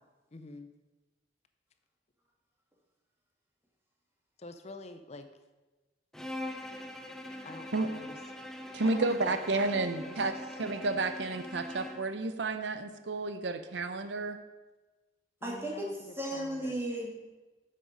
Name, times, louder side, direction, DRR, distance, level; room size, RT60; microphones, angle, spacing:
voice 1, 0.3-0.7 4.4-5.3 7.4-8.5 8.8-10.6 15.4-16.8, left 2 dB, 35° left, 9 dB, 0.6 m, -46 dB
Bowed string instrument, 6.1-12.1, left 1 dB, 5° left, 0.8 m, -42 dB
voice 2, 8.7-10.3 10.6-14.4, right 3 dB, 75° right, 10 dB, 0.6 m, -31 dB
voice 3, 15.4-15.9 16.1-17.1, right 1 dB, 15° right, -2 dB, 2.3 m, -34 dB
10.0 x 7.5 x 5.1 m, 1.2 s
head